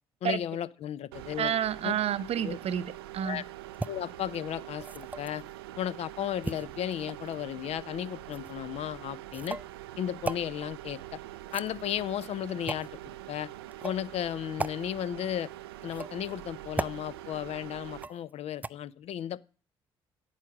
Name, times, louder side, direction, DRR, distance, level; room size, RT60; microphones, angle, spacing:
voice 1, 0.2-1.5 1.8-1.9 2.4-2.6 3.2-3.4 3.9-5.4 5.8-9.6 10.0-11.0 11.5-13.5 13.8-15.5 15.8-19.4, left 10 dB, 60° left, 0.5 m, -34 dB
sound 1, 1.1-18.1, right 15 dB, 90° right, 0.4 m, -44 dB
voice 2, 1.4-3.4, right 9 dB, 55° right, 0.7 m, -30 dB
sound 2, 3.7-3.9 4.8-5.4 6.4-7.3 8.3-8.5 9.3-9.7 10.2-10.4 11.4-12.0 12.7-12.9 13.7-14.0 14.6-14.8 15.8-16.3 16.8-17.0 18.0-18.3 18.6-18.7, right 2 dB, 15° right, 0.4 m, -36 dB
8.8 x 8.3 x 6.0 m
hypercardioid pair, 50°, 12 cm